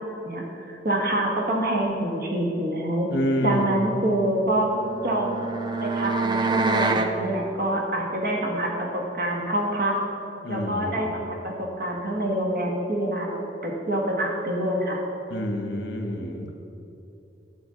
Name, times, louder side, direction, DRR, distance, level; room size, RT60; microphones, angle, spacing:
voice 1, 0.8-3.1 3.4-4.7 5.0-5.5 5.8-9.9 10.5-15.0, right 1 dB, 50° right, -1 dB, 1.5 m, -26 dB
voice 2, 3.1-3.8 10.4-11.1 15.3-16.5, equal, 85° left, 4 dB, 1.1 m, -28 dB
sound 1, 4.5-7.1, right 3 dB, 25° right, 0.4 m, -26 dB
12.5 x 7.2 x 3.8 m, 2.8 s
head